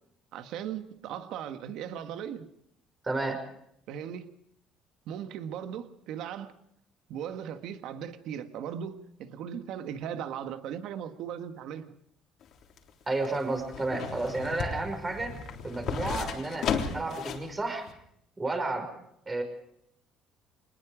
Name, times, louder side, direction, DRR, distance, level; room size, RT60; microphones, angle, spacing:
voice 1, 0.3-2.5 3.9-4.3 5.1-6.5 7.1-11.9, right 9 dB, 75° right, 1.5 m, -38 dB
voice 2, 3.0-3.4 13.1-15.4 15.6-17.9 18.4-18.9 19.3-19.4, right 2 dB, 20° right, 5.6 m, -31 dB
sound 1, 12.4-17.5 17.9-18.0, left 6 dB, 60° left, 3.5 m, -34 dB
26.5 x 20.0 x 5.0 m
cardioid pair, 105°, 0 cm